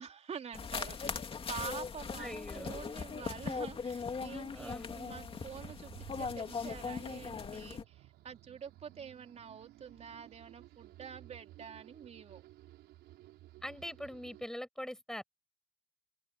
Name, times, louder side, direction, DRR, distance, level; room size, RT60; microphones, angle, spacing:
voice 1, 0.0-12.4, right 7 dB, 40° right, 3.7 m, -47 dB
sound 1, 0.5-7.8, left 5 dB, 35° left, 2.6 m, -40 dB
voice 2, 2.2-2.8 4.5-5.0 13.6-15.2, equal, 5° left, 6.9 m, -43 dB
sound 2, 3.5-14.4, right 15 dB, 85° right, 5.2 m, -56 dB
cardioid pair, 110°, 17 cm